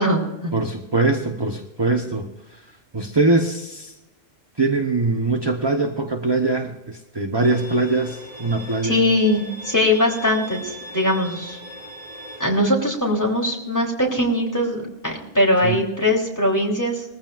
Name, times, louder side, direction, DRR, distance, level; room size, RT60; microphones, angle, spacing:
voice 1, 0.0-0.5 8.8-11.6 12.4-17.0, left 1 dB, 15° left, -2 dB, 3.3 m, -21 dB
voice 2, 0.5-2.3 2.5-2.6 2.9-3.9 4.6-9.0 15.6-15.8, right 3 dB, 25° right, 4 dB, 0.9 m, -22 dB
Bowed string instrument, 7.4-12.4, right 1 dB, 30° left, 5.1 m, -39 dB
21.5 x 15.0 x 2.5 m, 0.97 s
omnidirectional pair, 1.2 m